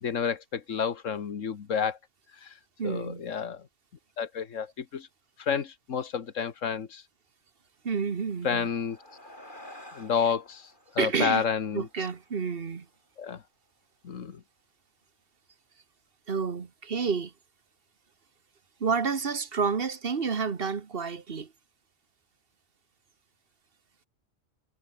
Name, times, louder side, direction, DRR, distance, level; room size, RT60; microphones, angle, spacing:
voice 1, 0.0-2.0 2.4-2.5 2.8-3.6 4.2-5.1 5.4-7.0 8.4-9.0 9.9-11.9 13.2-13.4 14.0-14.4, left 7 dB, 90° left, 1.7 m, -30 dB
voice 2, 2.8-3.2 7.8-8.7 11.0-11.4 11.7-12.9 16.3-17.3 18.8-21.5, right 5 dB, 50° right, 1.5 m, -29 dB
sound 1, 8.3-13.1, left 1 dB, 40° left, 7.8 m, -51 dB
omnidirectional pair, 1.3 m